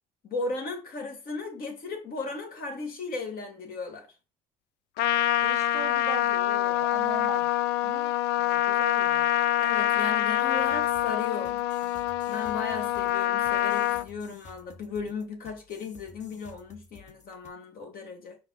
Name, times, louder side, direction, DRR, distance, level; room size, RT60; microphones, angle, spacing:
voice 1, 0.2-4.1 9.6-11.6 12.2-18.4, left 4 dB, 60° left, 2.3 m, -36 dB
Trumpet, 5.0-14.1, left 14 dB, 85° left, 0.5 m, -26 dB
voice 2, 5.4-7.5 7.8-9.4, right 7 dB, 40° right, 0.6 m, -40 dB
sound 1, 10.6-17.5, left 4 dB, 45° left, 1.6 m, -53 dB
5.4 x 5.4 x 4.1 m
cardioid pair, 110°, 17 cm